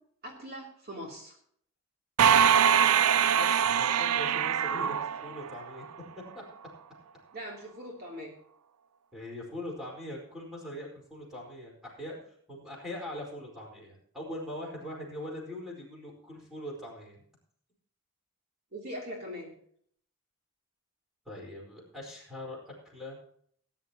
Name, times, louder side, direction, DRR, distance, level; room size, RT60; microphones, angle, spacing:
voice 1, 0.2-1.4 7.3-8.3 18.7-19.5, equal, 45° right, -2 dB, 3.0 m, -41 dB
sound 1, 2.2-5.9, right 8 dB, 85° right, 0.4 m, -23 dB
voice 2, 3.3-5.0 5.2-5.8 9.1-17.2 21.2-23.2, left 1 dB, ahead, -3 dB, 4.6 m, -41 dB
19.0 x 10.5 x 3.0 m, 0.62 s
head